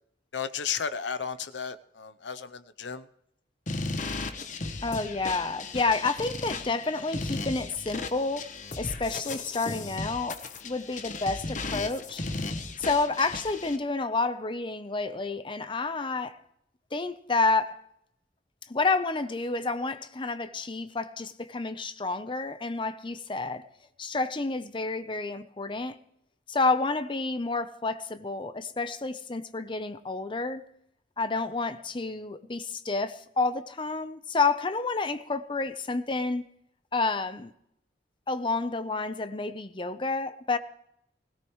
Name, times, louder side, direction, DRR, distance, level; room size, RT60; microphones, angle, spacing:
voice 1, 0.3-3.1, left 7 dB, 90° left, 0.8 m, -34 dB
sound 1, 3.7-13.8, left 3 dB, 45° left, 1.1 m, -36 dB
voice 2, 4.8-12.2 12.8-16.4 16.9-17.8 18.7-23.6 24.0-26.0 26.5-30.6 31.2-36.4 36.9-37.5 38.3-40.6, left 3 dB, 30° left, 0.7 m, -29 dB
20.0 x 17.0 x 3.2 m
head